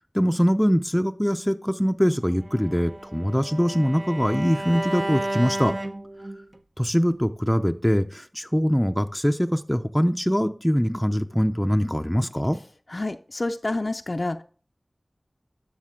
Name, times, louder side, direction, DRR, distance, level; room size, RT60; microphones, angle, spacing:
voice 1, 0.1-5.7 6.8-12.6, equal, 5° left, 6 dB, 0.5 m, -23 dB
Bowed string instrument, 2.4-6.6, right 1 dB, 50° right, 0.9 m, -32 dB
voice 2, 12.9-14.4, left 2 dB, 55° left, 6 dB, 0.4 m, -28 dB
12.0 x 6.6 x 3.7 m, 0.41 s
wide cardioid pair, 55°, 0 cm